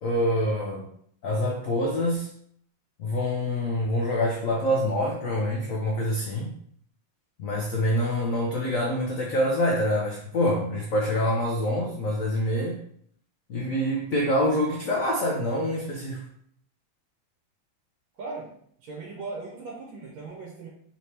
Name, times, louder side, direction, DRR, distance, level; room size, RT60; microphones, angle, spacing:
voice 1, 0.0-0.9 1.2-2.3 3.0-6.6 7.4-12.8 13.5-16.2, left 1 dB, 85° left, -1 dB, 0.7 m, -26 dB
voice 2, 18.1-18.5 18.8-20.7, right 3 dB, 70° right, -2 dB, 1.4 m, -38 dB
4.1 x 3.0 x 3.2 m, 0.64 s
omnidirectional pair, 2.3 m